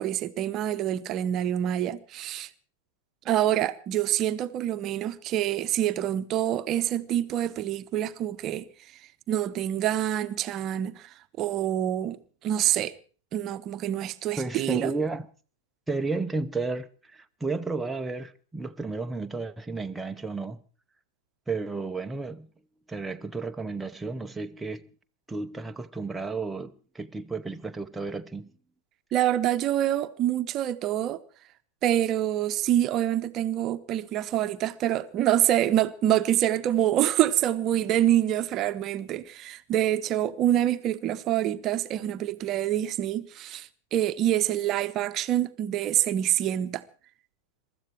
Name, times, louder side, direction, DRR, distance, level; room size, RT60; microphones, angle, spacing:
voice 1, 0.0-2.5 3.2-8.7 9.3-11.1 11.4-12.9 13.3-14.9 29.1-31.2 31.8-46.8, right 12 dB, 35° right, 0.9 m, -26 dB
voice 2, 14.4-15.3 15.9-20.6 21.5-22.5 22.9-24.9 25.3-28.5, right 3 dB, 10° right, 0.8 m, -32 dB
23.0 x 13.5 x 4.6 m
figure-of-eight pair, 95°, 0 cm